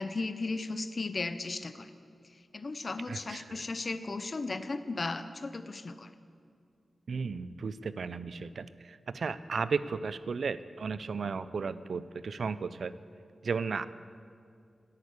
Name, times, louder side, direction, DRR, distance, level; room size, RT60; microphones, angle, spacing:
voice 1, 0.0-1.9 2.5-6.1, left 3 dB, 40° left, 11 dB, 0.6 m, -35 dB
voice 2, 3.1-3.6 7.1-12.9 13.4-13.8, right 5 dB, 65° right, 15 dB, 0.4 m, -34 dB
11.0 x 9.7 x 8.3 m, 2.3 s
wide cardioid pair, 120°, 0 cm